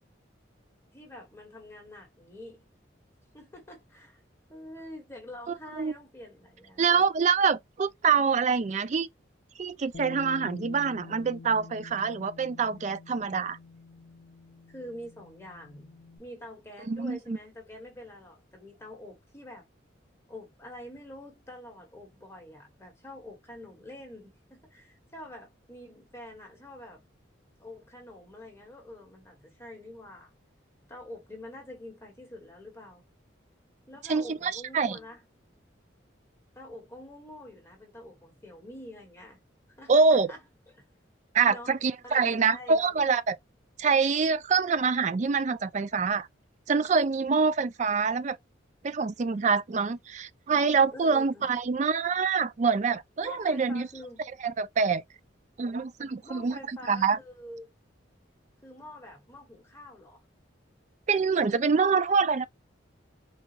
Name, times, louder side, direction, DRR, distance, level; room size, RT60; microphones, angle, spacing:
voice 1, 0.9-2.7 3.3-4.2 4.5-7.0 14.7-19.6 20.3-27.0 27.6-30.3 30.9-33.0 33.9-35.2 36.5-39.4 39.8-40.4 40.7-40.8 41.5-42.9 50.9-51.5 53.2-54.3 56.2-57.7 58.6-60.2, left 1 dB, 15° left, 1.2 m, -46 dB
voice 2, 6.8-9.1 9.6-13.6 16.9-17.4 34.1-35.0 39.9-40.3 41.3-43.4 43.8-46.3 46.7-48.4 48.8-53.9 54.4-55.0 55.6-57.2 61.1-62.5, right 5 dB, 35° right, 0.3 m, -25 dB
Bass guitar, 9.9-16.2, left 4 dB, 55° left, 0.6 m, -47 dB
4.0 x 2.3 x 2.7 m
head